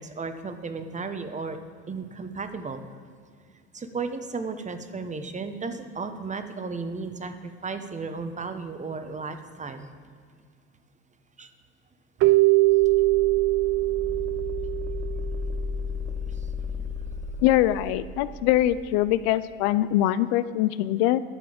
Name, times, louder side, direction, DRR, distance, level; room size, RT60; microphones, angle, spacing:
voice 1, 0.0-1.6 1.9-2.8 3.7-9.9 11.4-11.5 16.3-16.4 16.8-16.9, right 4 dB, 25° right, 9 dB, 1.0 m, -34 dB
Keyboard (musical), 12.2-15.5, right 20 dB, 45° right, 0.4 m, -22 dB
sound 1, 12.7-19.3, left 4 dB, 5° left, 0.8 m, -34 dB
voice 2, 17.4-21.2, left 14 dB, 65° left, 15 dB, 0.5 m, -23 dB
11.0 x 6.8 x 5.1 m, 2.1 s
hypercardioid pair, 70°, 32 cm